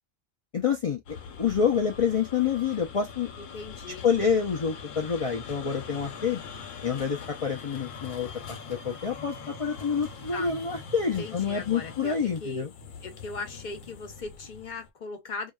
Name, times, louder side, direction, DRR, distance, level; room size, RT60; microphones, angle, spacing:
voice 1, 0.5-3.3 3.9-6.4 6.8-12.7, left 6 dB, 65° left, 0.3 m, -28 dB
sound 1, 1.1-14.9, left 6 dB, 80° left, 1.0 m, -43 dB
voice 2, 3.4-4.0 10.3-10.5 11.2-12.7 13.0-15.5, left 3 dB, 45° left, 0.7 m, -38 dB
2.8 x 2.3 x 2.2 m
omnidirectional pair, 1.3 m